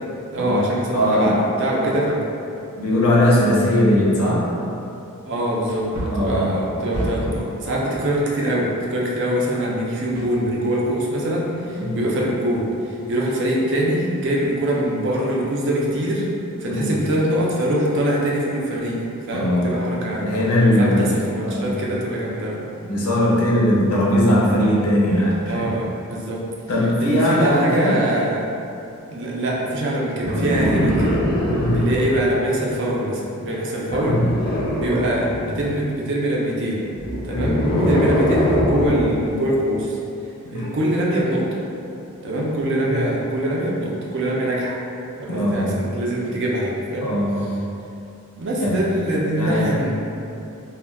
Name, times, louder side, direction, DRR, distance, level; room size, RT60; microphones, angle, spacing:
voice 1, 0.3-2.2 5.3-5.9 6.1-16.2 16.6-20.3 20.8-22.6 25.5-26.4 27.0-28.5 29.1-31.2 31.7-34.2 34.8-36.8 37.2-40.0 40.5-41.5 42.2-44.8 45.2-47.1 48.4-49.9, right 1 dB, 55° right, -3 dB, 0.4 m, -23 dB
voice 2, 0.9-1.3 1.8-2.0 2.8-4.5 6.1-6.6 11.7-12.0 16.7-16.9 19.3-19.8 20.2-21.1 21.4-21.7 22.8-25.6 26.7-28.0 30.6-30.8 31.5-31.9 33.9-34.3 37.3-37.5 40.4-40.7 42.8-43.0 45.3-45.7 47.0-47.4 48.6-48.8 49.3-49.7, equal, 75° left, -4 dB, 0.6 m, -20 dB
Wood, 5.6-7.5 10.1-10.9 11.3-11.4, right 1 dB, 90° right, 0.8 m, -30 dB
sound 1, 30.2-32.2 33.9-35.6 36.9-39.2 40.5-40.7, equal, 20° left, 0.4 m, -22 dB
2.2 x 2.1 x 3.4 m, 2.7 s
head